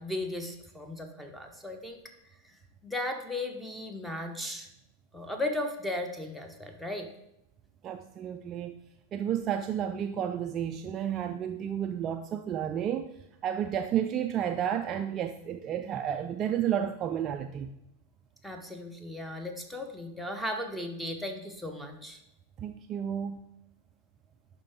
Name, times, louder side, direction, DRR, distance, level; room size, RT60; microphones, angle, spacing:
voice 1, 0.0-2.0 2.4-2.6 2.8-4.7 5.1-7.1 18.4-22.2, left 1 dB, ahead, 5 dB, 0.9 m, -36 dB
voice 2, 7.8-8.8 9.1-17.7 22.6-23.4, right 9 dB, 30° right, 7 dB, 0.3 m, -31 dB
10.5 x 3.7 x 3.4 m, 0.82 s
figure-of-eight pair, 90°, 0 cm